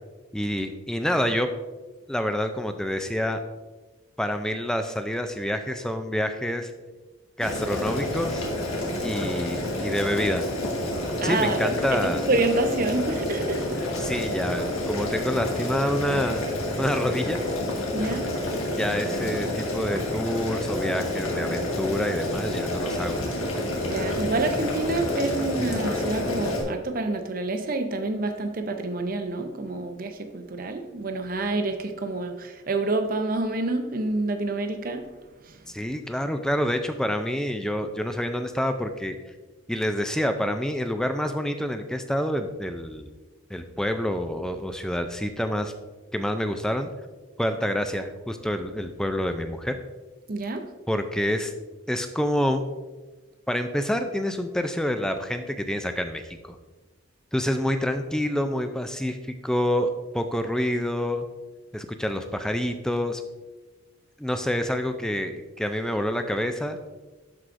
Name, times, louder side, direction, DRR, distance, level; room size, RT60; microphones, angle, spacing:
voice 1, 0.3-1.5 2.1-3.4 4.2-6.7 7.4-8.5 9.0-10.5 11.2-12.3 13.9-16.5 16.8-17.4 18.8-23.2 35.7-39.2 39.7-43.1 43.5-45.7 46.1-46.9 47.4-49.8 50.9-51.5 51.9-52.6 53.5-56.4 57.3-61.3 61.7-63.2 64.2-66.8, equal, 5° left, 0.3 m, -27 dB
Boiling, 7.4-26.6, left 1 dB, 85° left, 1.6 m, -29 dB
voice 2, 11.2-11.7 12.3-13.7 17.9-18.3 23.8-35.0 50.3-50.7, right 2 dB, 40° right, 0.6 m, -27 dB
11.5 x 4.8 x 2.6 m
head